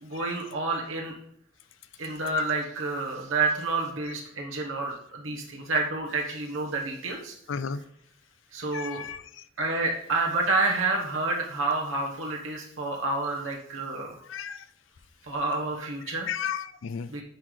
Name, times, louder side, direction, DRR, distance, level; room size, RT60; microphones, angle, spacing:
voice 1, 0.0-1.1 2.0-7.4 7.7-7.8 8.5-9.1 9.6-14.2 15.2-16.3 17.1-17.2, right 3 dB, 90° right, -1 dB, 1.1 m, -29 dB
voice 2, 7.5-7.8 8.7-9.2 14.3-14.6 16.3-17.1, left 7 dB, 75° left, 14 dB, 0.4 m, -33 dB
9.5 x 4.0 x 3.2 m, 0.70 s
head